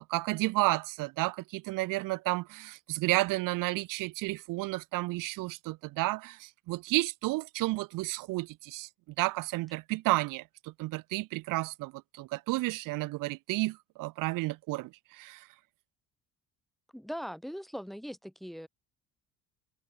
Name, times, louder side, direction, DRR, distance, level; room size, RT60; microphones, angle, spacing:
voice 1, 0.0-8.9 9.2-15.5, right 20 dB, 50° right, 0.5 m, -32 dB
voice 2, 16.9-18.7, equal, ahead, 1.5 m, -40 dB
hypercardioid pair, 55°, 42 cm